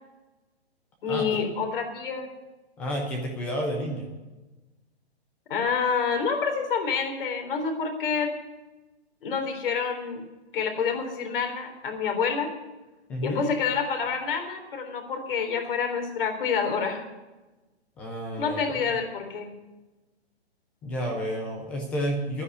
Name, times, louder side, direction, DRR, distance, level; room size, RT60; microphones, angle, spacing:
voice 1, 1.0-2.3 5.5-8.3 9.2-10.2 10.5-12.5 13.2-17.0 18.4-19.5, left 6 dB, 55° left, 4 dB, 3.9 m, -28 dB
voice 2, 2.8-4.1 13.1-13.4 18.0-18.9 20.8-22.4, equal, 5° left, 3 dB, 0.4 m, -31 dB
12.5 x 9.8 x 8.2 m, 1.1 s
hypercardioid pair, 150°, 33 cm